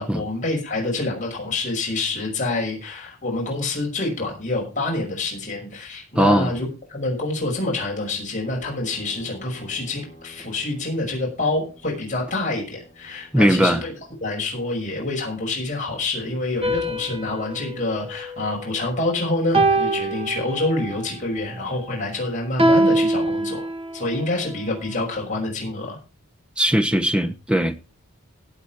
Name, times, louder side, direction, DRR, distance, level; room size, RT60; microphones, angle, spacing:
voice 1, 0.0-13.9 14.2-26.0, left 2 dB, 35° left, 5.9 m, -27 dB
voice 2, 6.1-6.5 13.3-13.8 26.6-27.8, equal, 5° right, 0.9 m, -19 dB
sound 1, 8.4-14.2, equal, 15° left, 6.6 m, -49 dB
sound 2, 16.6-19.0 19.5-21.0 22.6-24.1, right 1 dB, 25° right, 1.8 m, -23 dB
17.5 x 8.1 x 4.4 m
head